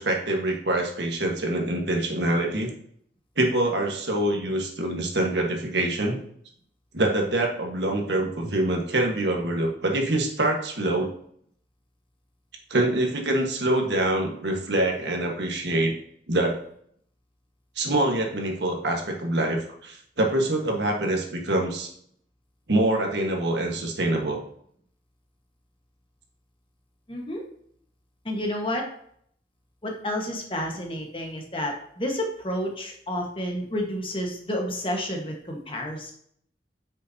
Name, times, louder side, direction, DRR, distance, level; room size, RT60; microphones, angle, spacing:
voice 1, 0.0-2.7 3.4-6.2 6.9-11.1 12.7-15.9 16.3-16.5 17.8-21.9 22.7-24.4, right 1 dB, 80° right, 2 dB, 1.5 m, -25 dB
voice 2, 27.1-27.4 28.2-28.9 29.8-36.1, left 1 dB, 30° left, 1 dB, 1.4 m, -30 dB
8.2 x 6.3 x 2.8 m, 0.65 s
head